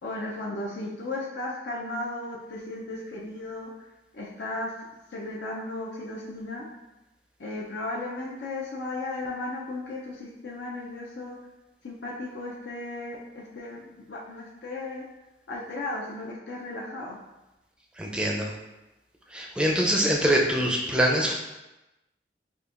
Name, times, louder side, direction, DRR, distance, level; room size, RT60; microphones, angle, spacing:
voice 1, 0.0-4.7 5.1-6.7 7.4-11.4 11.8-15.1 15.5-17.2, left 2 dB, 80° left, -4 dB, 0.5 m, -35 dB
voice 2, 18.0-18.5 19.3-21.3, right 1 dB, 5° right, -1 dB, 0.4 m, -24 dB
5.1 x 2.5 x 2.4 m, 1.0 s
head